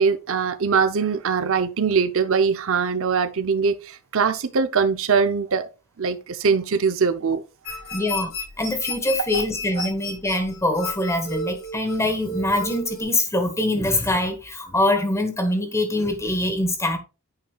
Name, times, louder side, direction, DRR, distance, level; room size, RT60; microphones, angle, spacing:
voice 1, 0.0-5.7 6.0-7.4 9.3-9.4 9.8-9.9, right 5 dB, 65° right, 0.6 m, -22 dB
sound 1, 7.6-13.0, left 1 dB, 70° left, 2.5 m, -33 dB
voice 2, 7.9-8.3 8.6-17.0, left 1 dB, 15° left, 1.3 m, -24 dB
9.2 x 5.4 x 2.3 m
head